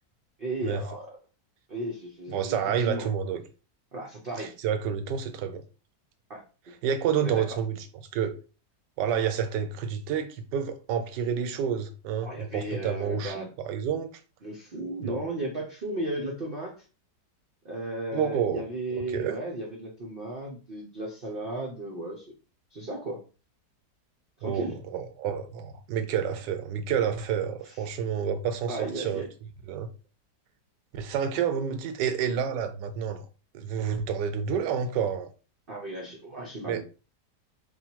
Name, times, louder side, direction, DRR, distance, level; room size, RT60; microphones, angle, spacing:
voice 1, 0.4-1.2 1.7-3.1 3.9-4.5 6.3-6.4 7.2-7.6 12.2-13.5 14.4-16.8 17.6-22.3 22.7-23.2 24.4-24.8 27.7-27.8 28.7-29.3 35.7-36.8, right 1 dB, 55° right, 0.6 m, -35 dB
voice 2, 2.3-3.4 4.4-5.6 6.8-7.8 8.1-8.4 9.0-14.1 15.0-15.2 18.1-18.6 18.9-19.4 24.4-24.7 24.9-29.2 29.7-29.9 30.9-33.2 33.5-35.3 36.7-36.8, right 7 dB, 85° right, 1.3 m, -29 dB
3.5 x 2.3 x 4.4 m
omnidirectional pair, 1.8 m